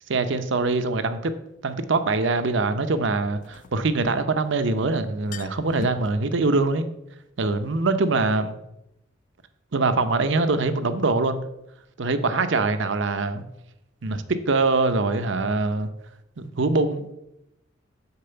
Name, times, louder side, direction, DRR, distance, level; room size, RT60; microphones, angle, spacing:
voice 1, 0.1-1.3 1.6-6.9 7.4-8.6 9.7-11.4 12.0-13.4 14.0-15.9 16.4-17.2, right 3 dB, 65° right, 10 dB, 0.7 m, -23 dB
sound 1, 0.7-0.8 3.2-4.5 4.8-4.9 5.1-6.1, left 4 dB, 40° left, 0.4 m, -40 dB
6.7 x 4.7 x 6.9 m, 0.86 s
head